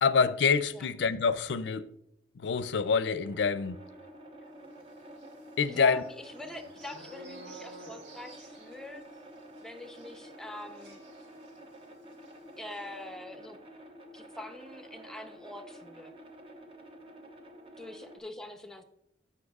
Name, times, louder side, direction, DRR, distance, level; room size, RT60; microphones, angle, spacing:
voice 1, 0.0-1.9 2.4-3.8 5.6-6.0, left 5 dB, 70° left, 0.4 m, -26 dB
sound 1, 3.2-18.2, right 1 dB, 30° right, 1.0 m, -50 dB
sound 2, 5.1-11.8 12.1-12.3 12.6-12.9, right 2 dB, 80° right, 1.4 m, -53 dB
voice 2, 5.7-9.0 9.6-11.0 12.6-13.6 14.1-16.1 17.8-18.8, left 1 dB, 5° left, 0.7 m, -44 dB
14.5 x 5.7 x 2.4 m
head